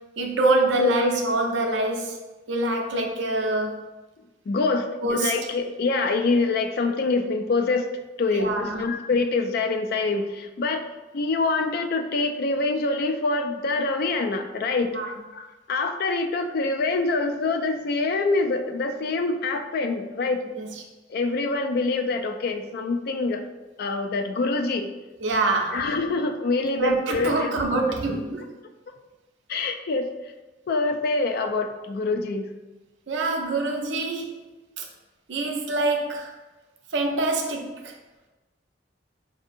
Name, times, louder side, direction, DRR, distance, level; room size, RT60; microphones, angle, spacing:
voice 1, 0.2-2.2 2.5-3.8 5.0-5.3 8.3-8.8 14.9-15.1 20.6-20.7 25.2-25.9 26.8-28.4 33.1-34.9 35.3-36.3 36.9-37.9, right 2 dB, 75° right, 2 dB, 0.6 m, -25 dB
voice 2, 4.5-7.9 8.2-10.8 11.1-20.5 21.1-23.4 23.8-24.9 25.7-27.8 29.5-30.1 30.7-32.5, left 3 dB, 55° left, 6 dB, 0.4 m, -25 dB
5.1 x 2.7 x 2.6 m, 1.2 s
head